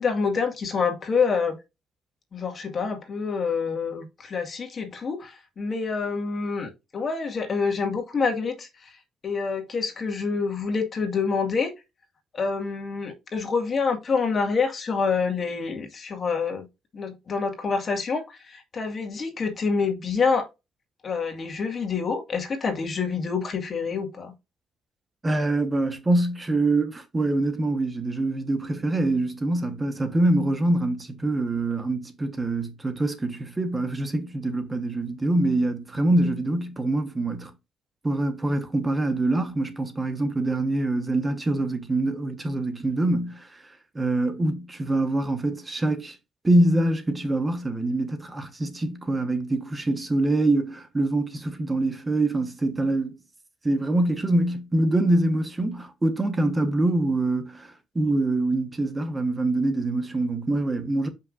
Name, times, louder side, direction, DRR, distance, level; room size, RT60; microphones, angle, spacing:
voice 1, 0.0-1.6 2.3-8.9 9.2-11.7 12.3-16.7 16.9-20.5 21.0-24.3, left 5 dB, 45° left, 1.9 m, -27 dB
voice 2, 25.2-37.5 38.0-43.6 43.9-46.2 46.4-53.2 53.6-61.1, right 2 dB, 20° right, 1.2 m, -25 dB
6.8 x 5.6 x 2.6 m
cardioid pair, 90°, 0 cm